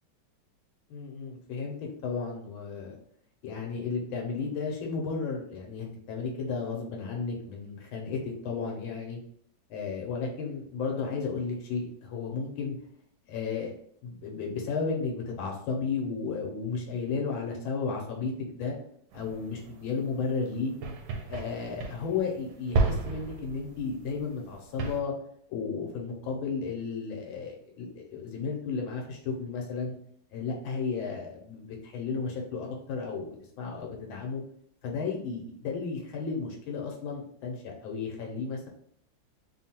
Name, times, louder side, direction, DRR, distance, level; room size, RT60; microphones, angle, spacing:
voice 1, 0.9-2.9 3.4-9.2 9.7-12.8 13.3-13.7 14.0-18.7 19.1-20.7 21.3-25.1 25.5-30.0 30.3-33.3 33.6-34.4 34.8-38.7, left 5 dB, 80° left, 1 dB, 1.7 m, -33 dB
sound 1, 19.1-25.0, right 3 dB, 80° right, 1.4 m, -33 dB
3.6 x 2.3 x 4.3 m, 0.65 s
omnidirectional pair, 2.2 m